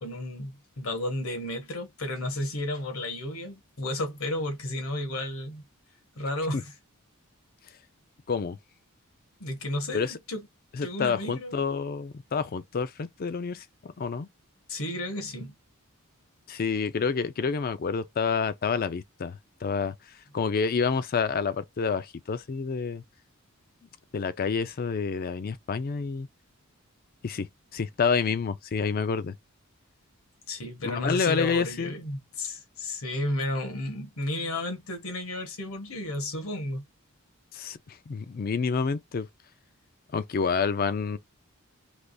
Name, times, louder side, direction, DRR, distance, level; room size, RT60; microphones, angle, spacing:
voice 1, 0.0-5.6 6.2-6.7 9.4-10.4 10.8-11.6 14.7-15.5 30.5-36.8, left 1 dB, 75° left, 1.2 m, -33 dB
voice 2, 10.7-14.3 16.5-19.9 20.3-23.0 24.1-26.3 27.2-27.5 27.7-29.3 30.8-31.9 37.5-39.3 40.1-41.2, left 5 dB, 45° left, 0.4 m, -28 dB
3.4 x 3.0 x 2.6 m
head